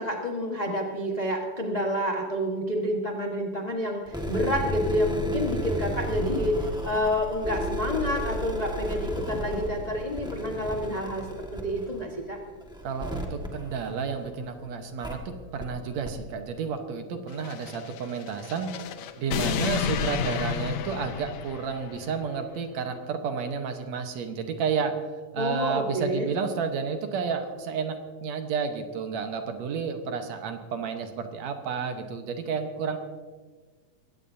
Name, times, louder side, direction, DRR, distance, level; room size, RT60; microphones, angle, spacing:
voice 1, 0.0-12.4 25.4-26.3, equal, 45° left, 0 dB, 0.5 m, -29 dB
sound 1, 4.1-14.4 15.0-15.1 15.6-15.7 16.0-16.1, left 1 dB, 5° right, 0.5 m, -33 dB
voice 2, 12.8-15.2 15.5-18.7 19.2-24.9 25.3-33.0, right 6 dB, 70° right, 6 dB, 2.3 m, -31 dB
sound 2, 17.3-22.1, left 8 dB, 75° left, 2.0 m, -31 dB
21.5 x 16.5 x 2.7 m, 1.4 s
omnidirectional pair, 3.3 m